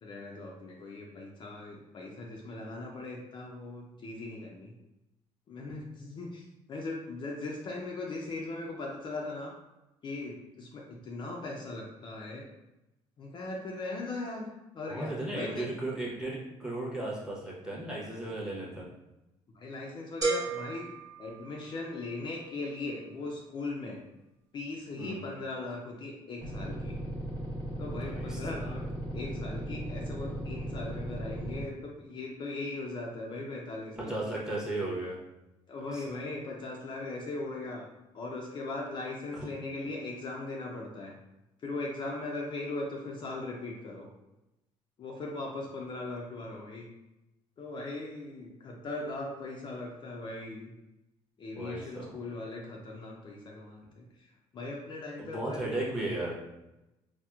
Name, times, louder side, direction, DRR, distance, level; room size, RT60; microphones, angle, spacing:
voice 1, 0.0-4.7 5.5-9.5 10.0-12.5 13.2-14.5 14.7-15.7 19.5-20.9 21.2-24.0 24.5-27.0 27.8-28.8 29.1-34.2 35.7-37.9 38.1-41.2 41.6-44.1 45.0-46.9 47.6-50.7 51.4-55.7, left 2 dB, 40° left, -1 dB, 0.4 m, -39 dB
voice 2, 14.9-18.9 25.0-25.2 28.0-28.8 34.0-35.2 35.9-36.2 39.3-39.4 51.5-52.2 55.2-56.4, right 2 dB, 5° right, -5 dB, 0.8 m, -36 dB
sound 1, 20.2-22.1, right 3 dB, 25° right, 1.1 m, -34 dB
sound 2, 26.4-31.6, right 1 dB, 75° right, 1.3 m, -37 dB
4.2 x 2.1 x 2.4 m, 0.95 s
cardioid pair, 125°, 12 cm